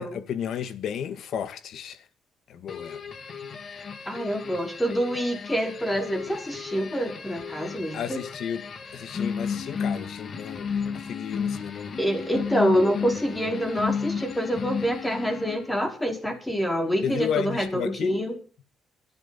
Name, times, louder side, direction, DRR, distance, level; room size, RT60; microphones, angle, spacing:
voice 1, 0.0-2.0 2.5-3.0 7.9-8.6 8.9-12.0 17.0-18.2, left 8 dB, 70° left, 1.8 m, -33 dB
sound 1, 2.7-15.8, left 6 dB, 45° left, 2.6 m, -33 dB
voice 2, 4.1-8.2 12.0-18.4, equal, 10° left, 5.3 m, -26 dB
22.0 x 12.0 x 4.3 m
cardioid pair, 110°, 0 cm